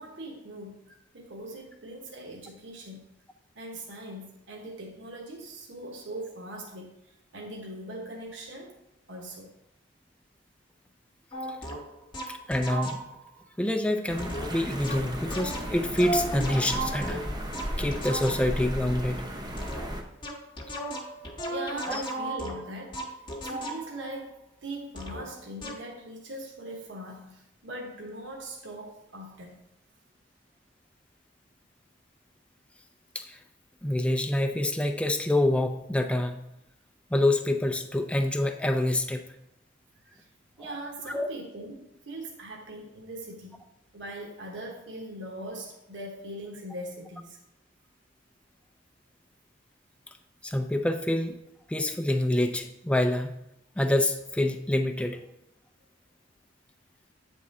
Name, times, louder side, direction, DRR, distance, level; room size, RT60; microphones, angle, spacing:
voice 1, 0.0-3.0 3.5-8.8 9.1-9.5 21.5-24.3 24.6-29.6 40.0-40.3 40.6-43.6 43.9-47.4, right 1 dB, 65° right, -1 dB, 1.1 m, -41 dB
sound 1, 11.3-13.3 14.2-18.7 19.6-24.1 25.0-25.3 25.6-25.9, right 1 dB, 25° left, 0.9 m, -36 dB
voice 2, 12.3-13.0 13.6-17.2 17.8-19.3 21.9-22.0 33.1-33.4 33.8-36.4 37.1-39.2 41.1-41.3 50.4-51.4 51.7-53.4 53.8-55.2, left 1 dB, 5° left, 6 dB, 0.4 m, -26 dB
sound 2, 14.1-20.0, equal, 25° right, 0.8 m, -35 dB
8.6 x 3.7 x 4.2 m, 0.84 s
head